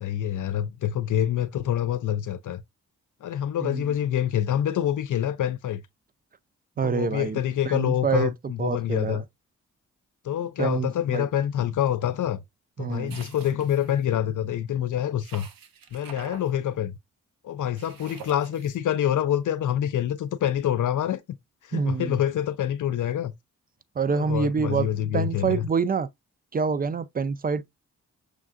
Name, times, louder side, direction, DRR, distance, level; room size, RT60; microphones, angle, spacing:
voice 1, 0.0-2.6 3.2-5.8 6.8-9.2 10.2-12.4 12.8-15.5 15.9-17.0 17.4-21.2 21.6-23.3 24.1-25.7, left 10 dB, 60° left, 0.5 m, -26 dB
voice 2, 6.8-7.4 7.6-8.3 8.6-9.2 10.6-11.3 12.8-13.2 21.7-22.2 24.0-24.9 25.1-26.1 26.5-27.6, right 5 dB, 25° right, 0.4 m, -26 dB
sound 1, 13.1-14.0 15.2-16.5 17.8-18.8, right 7 dB, 70° right, 0.8 m, -46 dB
6.2 x 2.4 x 2.4 m
supercardioid pair, 40°, 35 cm